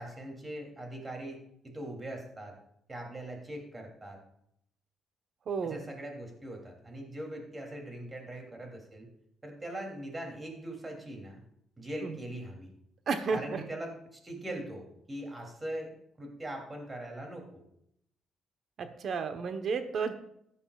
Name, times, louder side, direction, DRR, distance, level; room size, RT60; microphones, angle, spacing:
voice 1, 0.0-2.5 2.9-4.2 5.6-9.1 9.4-11.4 11.8-12.7 13.3-17.6, right 1 dB, 25° right, 1 dB, 3.0 m, -41 dB
voice 2, 5.5-5.8 12.0-12.2 13.1-13.6 18.8-20.1, right 5 dB, 60° right, 8 dB, 1.1 m, -32 dB
14.5 x 9.8 x 2.4 m, 0.75 s
cardioid pair, 90°, 0 cm